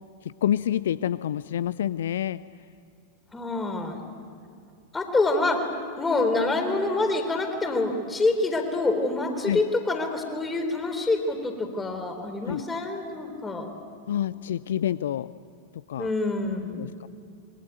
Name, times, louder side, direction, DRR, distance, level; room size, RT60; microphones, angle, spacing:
voice 1, 0.2-2.4 9.5-9.6 12.4-12.6 14.1-15.3 15.9-16.1 16.7-17.1, left 10 dB, 60° left, 17 dB, 0.5 m, -28 dB
voice 2, 3.3-4.1 4.9-5.7 6.0-13.7 16.0-16.9, left 2 dB, 15° left, 6 dB, 4.0 m, -26 dB
26.5 x 22.5 x 9.2 m, 2.4 s
figure-of-eight pair, 90°, 0 cm